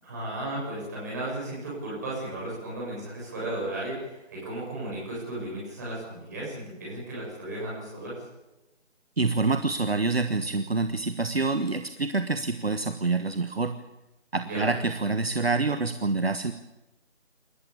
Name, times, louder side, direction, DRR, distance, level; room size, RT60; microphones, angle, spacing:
voice 1, 0.0-8.2 14.4-14.7, right 1 dB, 15° right, -6 dB, 7.6 m, -35 dB
voice 2, 9.2-13.8 14.3-16.5, right 3 dB, 55° right, 9 dB, 1.3 m, -26 dB
27.5 x 15.0 x 8.7 m, 0.98 s
figure-of-eight pair, 175°, 37 cm